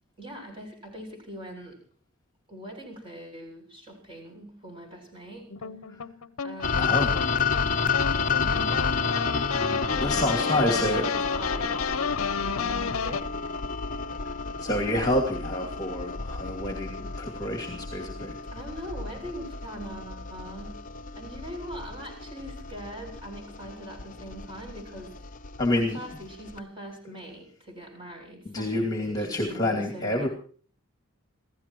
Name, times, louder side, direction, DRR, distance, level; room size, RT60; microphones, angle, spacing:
voice 1, 0.2-1.8 2.5-5.5 6.4-6.9 8.4-9.1 9.6-11.8 12.4-13.5 18.5-20.9 21.2-25.1 25.8-30.3, right 1 dB, 25° right, 2 dB, 7.3 m, -42 dB
sound 1, 5.5-13.2, left 6 dB, 70° left, 0.7 m, -32 dB
sound 2, 6.6-26.6, left 5 dB, 35° left, 0.7 m, -31 dB
voice 2, 6.8-7.2 10.0-11.1 14.6-18.4 25.6-26.0 28.4-30.3, left 1 dB, 15° left, 0 dB, 2.5 m, -28 dB
28.0 x 16.0 x 3.1 m, 0.43 s
head